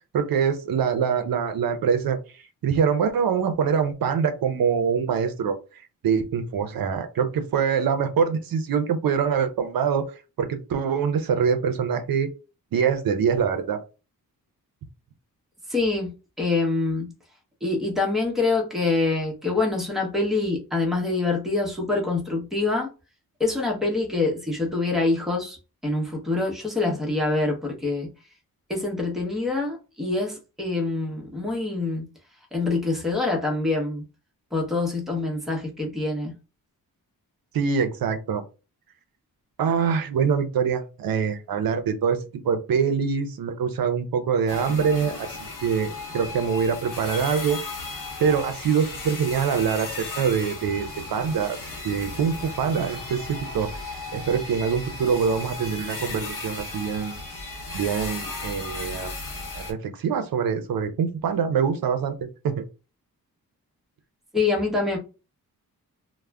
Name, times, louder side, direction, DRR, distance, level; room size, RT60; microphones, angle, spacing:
voice 1, 0.1-2.2 2.6-5.5 6.0-10.1 10.4-12.3 12.7-13.8 37.5-38.4 39.6-47.6 48.2-51.6 51.8-53.7 54.1-57.2 57.7-59.1 59.6-62.2 62.4-62.6, right 6 dB, 70° right, 0.5 m, -24 dB
voice 2, 15.7-16.1 16.4-17.1 17.6-22.9 23.4-25.6 25.8-28.1 28.7-32.1 32.5-34.0 34.5-36.3 64.3-65.0, left 3 dB, ahead, 0.8 m, -25 dB
sound 1, 44.5-59.7, left 3 dB, 60° left, 0.8 m, -35 dB
2.3 x 2.0 x 3.3 m
wide cardioid pair, 100°, 36 cm